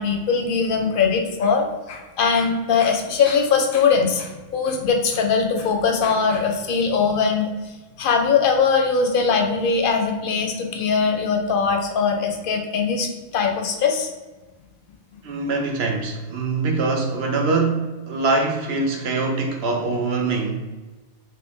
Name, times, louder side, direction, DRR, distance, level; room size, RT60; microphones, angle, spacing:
voice 1, 0.0-14.1, left 5 dB, 55° left, 3 dB, 0.6 m, -21 dB
voice 2, 15.2-20.6, right 3 dB, 65° right, 2 dB, 0.7 m, -23 dB
3.0 x 2.7 x 3.4 m, 1.2 s
omnidirectional pair, 1.3 m